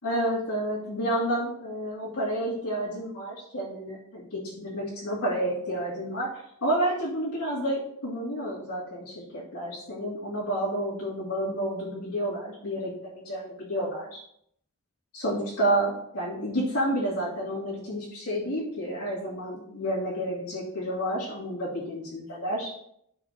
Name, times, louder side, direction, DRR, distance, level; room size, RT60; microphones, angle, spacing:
voice 1, 0.0-6.3 6.6-14.2 15.1-22.7, right 1 dB, 85° left, -8 dB, 2.5 m, -30 dB
12.5 x 5.9 x 2.8 m, 0.71 s
head